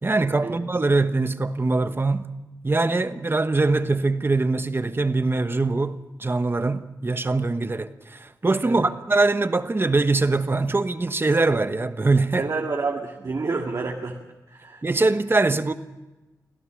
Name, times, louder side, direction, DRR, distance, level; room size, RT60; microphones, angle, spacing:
voice 1, 0.0-2.3 2.6-12.5 14.8-15.7, right 3 dB, 35° right, 1.1 m, -22 dB
voice 2, 12.4-14.2 14.5-14.8, right 3 dB, 60° right, 1.9 m, -29 dB
25.5 x 16.5 x 6.4 m
wide cardioid pair, 75°, 7 cm